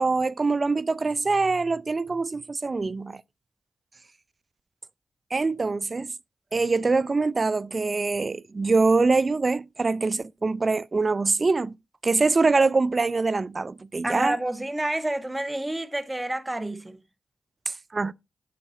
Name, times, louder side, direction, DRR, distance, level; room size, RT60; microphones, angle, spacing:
voice 1, 0.0-3.2 5.3-6.1 6.5-11.7 12.0-14.4 17.7-18.1, right 3 dB, 45° right, 0.5 m, -24 dB
voice 2, 14.0-17.0, right 1 dB, 20° right, 1.4 m, -29 dB
10.0 x 5.9 x 4.1 m
supercardioid pair, 45°, 0 cm